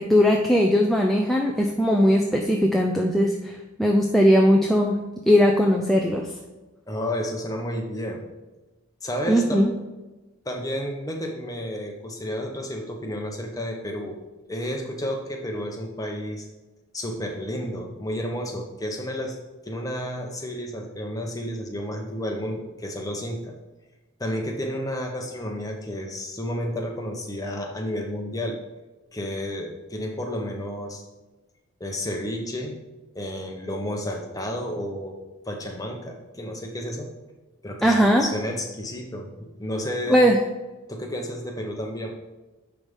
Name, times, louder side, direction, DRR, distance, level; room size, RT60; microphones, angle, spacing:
voice 1, 0.0-5.0 5.3-6.3 9.3-9.7 37.8-38.3 40.1-40.4, equal, ahead, 0 dB, 0.4 m, -19 dB
voice 2, 6.9-8.3 9.0-9.6 10.4-14.2 14.5-16.5 16.9-19.4 19.6-23.5 24.2-28.6 29.1-31.0 31.8-32.8 33.1-35.2 35.4-37.1 37.6-40.2 40.9-42.2, equal, 15° left, 2 dB, 1.0 m, -31 dB
10.0 x 3.5 x 5.4 m, 1.1 s
head